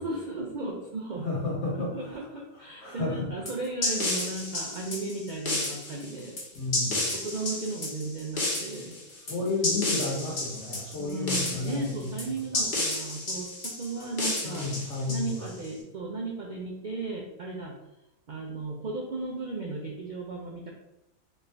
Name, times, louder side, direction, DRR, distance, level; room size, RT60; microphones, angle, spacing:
voice 1, 0.0-1.3 1.9-6.4 7.1-9.0 11.0-14.7 15.0-17.7 18.3-20.7, right 3 dB, 60° right, -1 dB, 0.5 m, -35 dB
voice 2, 1.2-2.1 2.8-3.3 6.5-7.0 9.3-12.1 12.5-12.6 14.4-15.5, left 3 dB, 60° left, -3 dB, 1.3 m, -32 dB
sound 1, 3.5-15.7, left 2 dB, 40° left, 1.0 m, -31 dB
4.3 x 2.5 x 3.3 m, 0.88 s
omnidirectional pair, 1.4 m